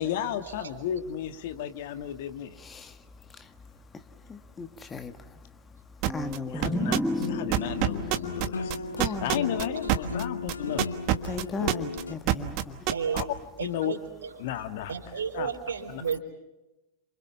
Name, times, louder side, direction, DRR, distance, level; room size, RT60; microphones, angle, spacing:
voice 1, 0.0-2.6 6.5-8.8 9.0-10.9 13.1-13.2 13.6-13.9 14.4-14.9 15.3-15.5 15.9-16.0, left 11 dB, 50° left, 9 dB, 1.6 m, -33 dB
voice 2, 2.6-7.3 8.7-9.4 11.2-12.9, left 4 dB, 20° left, 8 dB, 1.7 m, -39 dB
sound 1, 6.0-6.4 6.6-7.3 7.5-13.2, right 14 dB, 45° right, 1.4 m, -25 dB
Ascending Harp, 6.1-9.7, equal, ahead, 1.1 m, -34 dB
sound 2, 7.2-12.1, left 5 dB, 75° left, 1.0 m, -35 dB
voice 3, 12.9-13.3 13.6-14.4 14.9-16.2, right 6 dB, 70° right, 6 dB, 3.7 m, -33 dB
28.5 x 26.5 x 5.8 m, 1.0 s
figure-of-eight pair, 90°, 0 cm